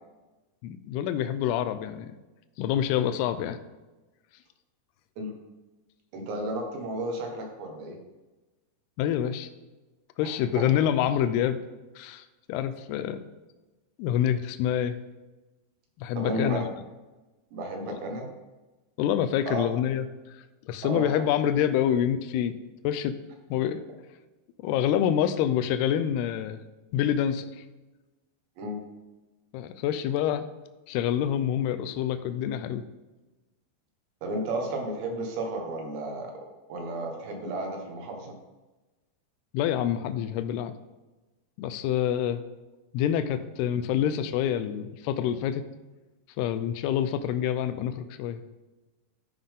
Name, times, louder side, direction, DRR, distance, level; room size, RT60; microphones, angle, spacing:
voice 1, 0.6-2.1 2.6-3.6 9.0-9.5 10.2-11.6 12.0-13.2 14.0-14.9 16.0-16.7 17.9-18.0 19.0-20.4 20.6-22.5 22.8-23.2 23.5-23.8 24.6-26.6 26.9-27.5 29.5-30.4 30.9-32.8 39.5-40.7 41.6-42.4 42.9-45.6 46.4-48.4, left 10 dB, 80° left, 10 dB, 2.4 m, -27 dB
voice 2, 6.1-8.0 10.2-10.7 16.2-16.6 17.5-18.3 19.5-19.7 20.8-21.3 28.6-28.8 34.2-36.3 36.7-38.4, right 1 dB, 80° right, 2 dB, 3.6 m, -33 dB
13.0 x 5.5 x 3.7 m, 1.1 s
omnidirectional pair, 5.0 m